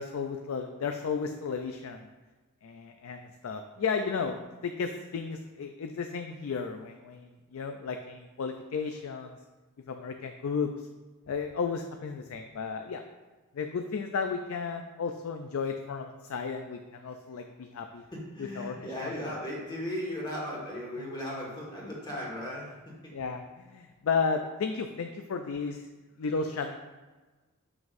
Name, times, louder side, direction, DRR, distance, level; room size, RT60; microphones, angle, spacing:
voice 1, 0.0-2.1 2.6-9.4 9.9-10.9 11.3-13.0 13.5-18.0 18.4-19.1 21.0-21.1 23.1-25.9 26.2-26.8, left 5 dB, 70° left, 6 dB, 0.4 m, -34 dB
voice 2, 18.1-23.1, left 1 dB, 20° left, -4 dB, 1.7 m, -37 dB
7.3 x 6.0 x 2.6 m, 1.3 s
head